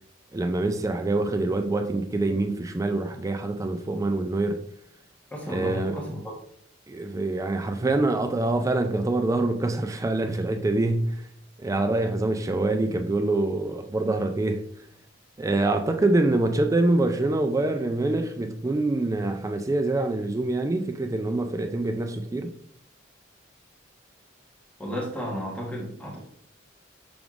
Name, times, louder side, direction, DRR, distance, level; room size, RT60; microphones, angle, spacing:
voice 1, 0.3-4.6 5.5-6.0 6.9-11.3 11.6-14.6 15.4-22.5, right 2 dB, 15° right, 0.3 m, -25 dB
voice 2, 5.3-6.2 24.8-26.2, equal, 5° left, 1.0 m, -33 dB
5.9 x 3.5 x 2.4 m
head